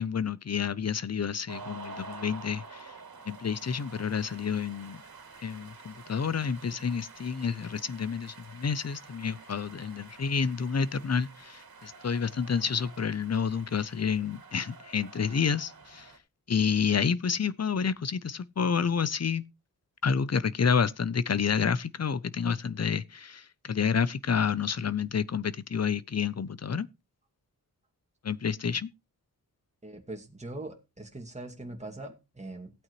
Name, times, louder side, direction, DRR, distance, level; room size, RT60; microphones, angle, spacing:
voice 1, 0.0-2.9 3.3-5.0 5.4-16.1 16.5-19.4 20.0-26.9 28.2-28.9, left 6 dB, 45° left, 0.7 m, -29 dB
sound 1, 1.5-16.2, right 4 dB, 70° right, 2.6 m, -49 dB
voice 2, 29.8-32.7, right 2 dB, 20° right, 2.3 m, -41 dB
15.5 x 8.8 x 3.1 m
wide cardioid pair, 95°, 37 cm